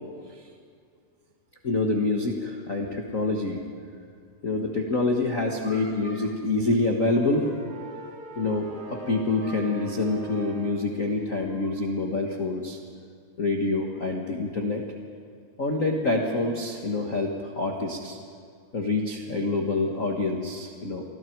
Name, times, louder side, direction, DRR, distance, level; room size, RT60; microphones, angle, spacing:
voice 1, 1.6-3.6 4.4-7.5 8.3-12.8 13.4-14.8 15.6-18.2 18.7-21.0, left 2 dB, 65° left, 1 dB, 0.7 m, -26 dB
sound 1, 6.9-10.9, right 1 dB, 65° right, 9.7 m, -41 dB
29.0 x 24.5 x 4.7 m, 2.1 s
omnidirectional pair, 4.2 m